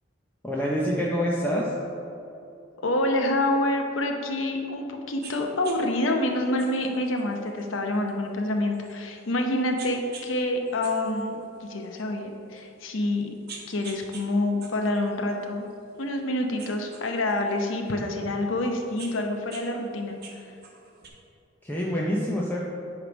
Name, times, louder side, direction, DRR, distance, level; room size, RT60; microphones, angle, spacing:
voice 1, 0.4-1.7 21.6-22.6, equal, 10° left, -5 dB, 0.6 m, -26 dB
voice 2, 2.8-13.3 13.7-15.7 16.0-20.2, left 1 dB, 75° left, 3 dB, 0.7 m, -27 dB
sound 1, 5.2-5.4 5.6-5.8 6.6-9.3 9.8-10.3 10.7-12.0 12.6-12.7 13.2-14.3 14.6-16.2 16.6-17.9 18.6-19.7 20.0-21.1, right 5 dB, 55° right, 1.0 m, -45 dB
9.2 x 3.2 x 5.1 m, 2.8 s
head